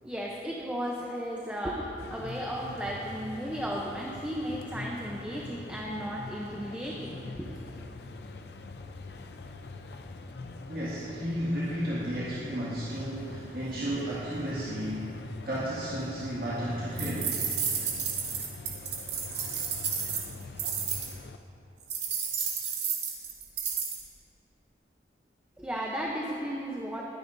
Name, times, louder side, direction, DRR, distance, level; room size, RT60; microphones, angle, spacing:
voice 1, 0.0-7.6 25.6-27.0, equal, 10° right, -3 dB, 0.7 m, -35 dB
sound 1, 2.0-21.4, left 3 dB, 70° left, 0.6 m, -43 dB
voice 2, 10.7-15.2 15.4-17.4, right 1 dB, 55° right, -9 dB, 2.1 m, -33 dB
sound 2, 17.0-21.1 21.9-24.0, right 7 dB, 90° right, 2.0 m, -32 dB
21.5 x 10.0 x 2.7 m, 2.8 s
head